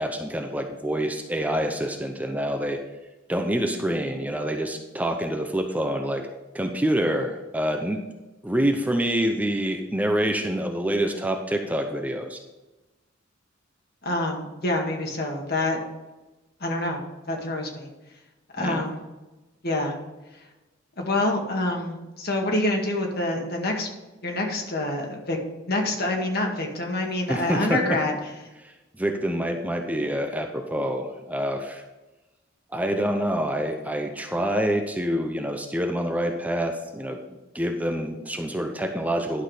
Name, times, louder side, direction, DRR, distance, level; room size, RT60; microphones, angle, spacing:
voice 1, 0.0-2.8 3.3-6.3 6.5-8.0 8.4-12.4 18.6-18.8 27.3-27.8 28.6-31.8 32.7-37.2 37.5-39.4, equal, 10° right, 4 dB, 0.7 m, -26 dB
voice 2, 14.0-15.8 16.6-17.9 18.5-19.0 19.6-20.0 21.0-23.9 24.2-25.4 25.6-28.1, left 2 dB, 55° left, 1 dB, 2.0 m, -26 dB
11.5 x 6.1 x 5.0 m, 1.1 s
head